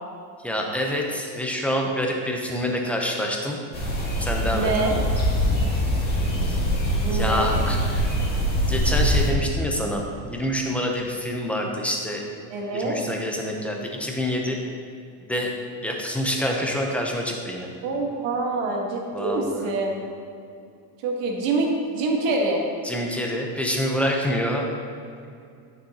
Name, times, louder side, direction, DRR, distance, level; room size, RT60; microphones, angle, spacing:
voice 1, 0.4-3.6 4.2-4.7 6.5-6.6 7.1-8.1 8.7-12.2 12.7-14.6 15.3-15.5 15.8-17.7 19.1-19.7 22.8-24.7, equal, 5° left, 0 dB, 0.6 m, -27 dB
sound 1, 3.7-9.3, equal, 20° left, 1.8 m, -23 dB
voice 2, 4.5-5.0 7.0-7.5 12.5-13.0 17.8-20.0 21.0-22.6, right 3 dB, 65° right, 0 dB, 1.5 m, -25 dB
9.5 x 6.3 x 2.8 m, 2.5 s
cardioid pair, 140°, 47 cm